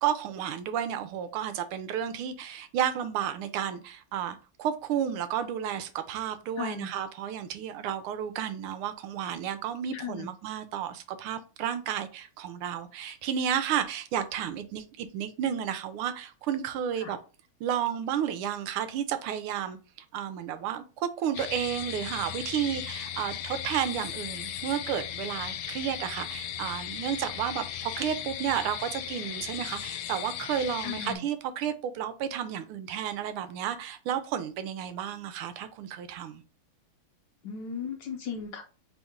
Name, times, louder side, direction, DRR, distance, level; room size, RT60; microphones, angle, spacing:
voice 1, 0.0-17.2 17.6-19.8 20.1-36.4, right 9 dB, 80° right, 1.5 m, -32 dB
voice 2, 6.6-6.9 9.9-10.3 17.0-17.1 30.8-31.2 37.4-38.6, left 6 dB, 70° left, 1.1 m, -36 dB
sound 1, 21.3-31.2, left 10 dB, 90° left, 1.5 m, -37 dB
4.0 x 3.7 x 3.6 m
omnidirectional pair, 2.4 m